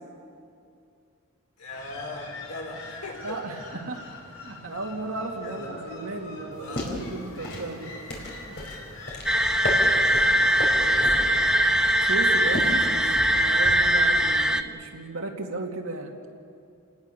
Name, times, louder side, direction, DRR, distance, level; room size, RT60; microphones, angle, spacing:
voice 1, 1.6-3.4 4.6-4.7 5.4-5.7 6.6-6.9 9.8-10.5 10.9-11.3 13.6-13.9, left 2 dB, 90° left, 0 dB, 5.2 m, -40 dB
sound 1, 1.7-13.1, left 2 dB, 65° left, 5.2 m, -44 dB
voice 2, 3.2-8.0 8.5-8.6 12.0-16.2, right 2 dB, 70° right, 2 dB, 2.4 m, -35 dB
sound 2, 6.5-14.0, left 1 dB, 50° left, 4.8 m, -35 dB
sound 3, 9.3-14.6, equal, 5° right, 0.6 m, -21 dB
29.0 x 19.0 x 6.8 m, 2.5 s
head